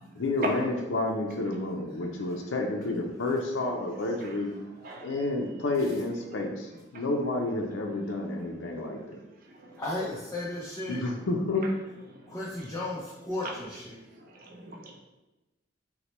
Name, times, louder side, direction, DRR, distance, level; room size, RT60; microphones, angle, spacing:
voice 1, 0.2-4.5 5.0-9.2 10.9-11.7, left 2 dB, 75° left, 1 dB, 0.5 m, -30 dB
voice 2, 4.8-5.2 9.6-9.8 12.3-12.7 13.4-13.7 14.2-14.9, right 1 dB, 50° right, 0 dB, 0.6 m, -38 dB
voice 3, 9.8-11.0 12.3-14.0, left 2 dB, 15° left, -6 dB, 0.6 m, -34 dB
6.0 x 2.2 x 3.0 m, 1.0 s
head